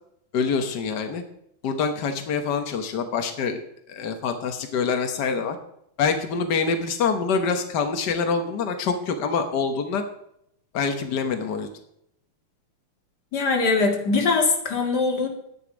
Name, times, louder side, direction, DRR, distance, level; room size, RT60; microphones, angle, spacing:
voice 1, 0.3-1.2 1.6-3.6 3.9-5.6 6.0-10.0 10.7-11.7, left 5 dB, 75° left, 6 dB, 0.9 m, -25 dB
voice 2, 13.3-15.3, left 4 dB, 35° left, 2 dB, 2.2 m, -22 dB
11.5 x 10.0 x 5.2 m, 0.74 s
omnidirectional pair, 3.6 m